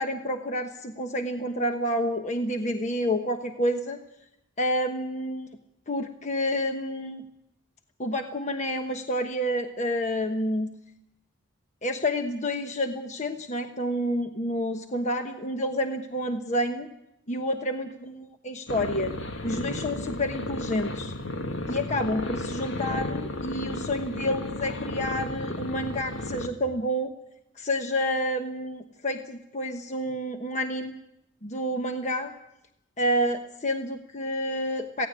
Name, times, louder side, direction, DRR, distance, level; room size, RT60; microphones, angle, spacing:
voice 1, 0.0-4.0 4.6-5.5 5.9-7.2 8.0-10.7 11.8-16.9 17.3-19.1 19.4-21.1 21.7-27.1 27.6-31.0 31.4-32.3 33.0-35.1, equal, 35° left, 5 dB, 1.2 m, -29 dB
sound 1, 18.7-26.5, left 1 dB, 75° left, 1.7 m, -33 dB
17.5 x 17.0 x 10.0 m, 0.84 s
head